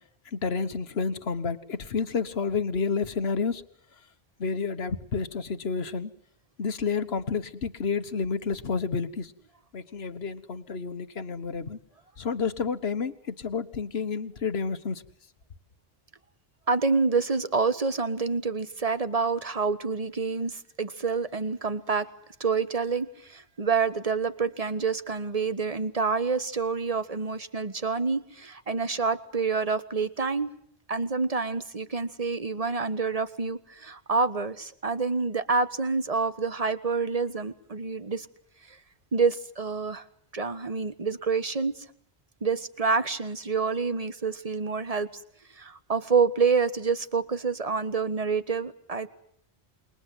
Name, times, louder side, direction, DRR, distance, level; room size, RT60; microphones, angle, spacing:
voice 1, 0.2-3.6 4.4-6.1 6.6-9.3 9.7-11.8 12.2-15.0, left 5 dB, 75° left, 13 dB, 1.5 m, -30 dB
voice 2, 16.7-22.1 22.4-30.5 30.9-38.3 38.7-38.8 39.1-40.0 40.3-41.8 42.4-45.1 45.6-49.1, right 4 dB, 35° right, 12 dB, 1.5 m, -27 dB
28.0 x 22.5 x 7.9 m, 0.67 s
omnidirectional pair, 1.1 m